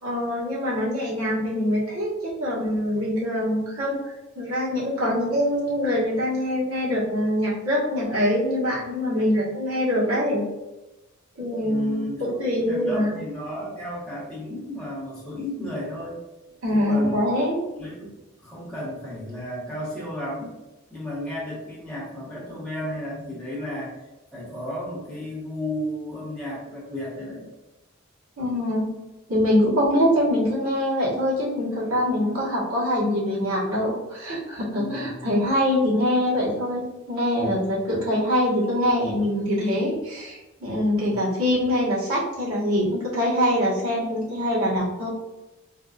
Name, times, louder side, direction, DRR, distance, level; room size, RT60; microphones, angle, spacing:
voice 1, 0.0-4.0 4.3-10.5 11.4-13.2 16.6-17.6 28.4-28.9 29.3-45.1, equal, 80° right, -6 dB, 1.4 m, -24 dB
voice 2, 11.6-16.2 16.7-17.2 17.8-18.1 18.4-20.5 20.9-24.0 24.3-27.5 34.7-35.2 41.1-41.2, left 1 dB, 5° left, -7 dB, 1.1 m, -33 dB
4.1 x 2.4 x 2.4 m, 1.0 s
head